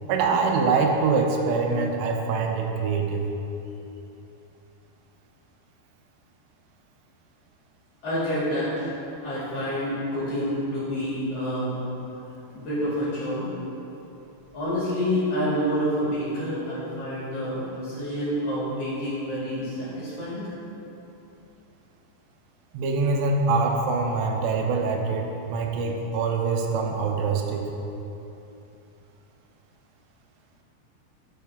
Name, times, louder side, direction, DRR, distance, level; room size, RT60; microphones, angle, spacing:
voice 1, 0.1-3.3 22.7-27.6, right 4 dB, 85° right, 2 dB, 2.9 m, -24 dB
voice 2, 8.0-8.9 9.2-11.9 12.5-13.5 14.5-20.5, equal, 45° left, -10 dB, 2.7 m, -28 dB
12.0 x 6.5 x 3.5 m, 2.9 s
omnidirectional pair, 4.9 m